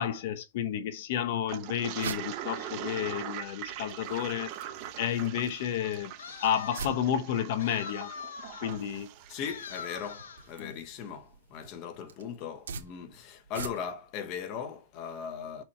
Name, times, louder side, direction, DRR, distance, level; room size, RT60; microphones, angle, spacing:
voice 1, 0.0-4.5 5.0-6.1 6.4-8.1 8.6-9.1 10.6-10.7, left 9 dB, 40° left, 0.8 m, -31 dB
sound 1, 1.3-14.1, right 5 dB, 85° right, 1.6 m, -46 dB
Toilet flush, 1.5-10.1, right 11 dB, 30° right, 0.9 m, -42 dB
sound 2, 6.2-7.1 7.6-8.8 9.4-10.5, left 6 dB, 85° left, 1.1 m, -43 dB
voice 2, 9.3-15.6, left 7 dB, 25° left, 1.2 m, -39 dB
6.0 x 4.5 x 4.2 m
hypercardioid pair, 175°, 0 cm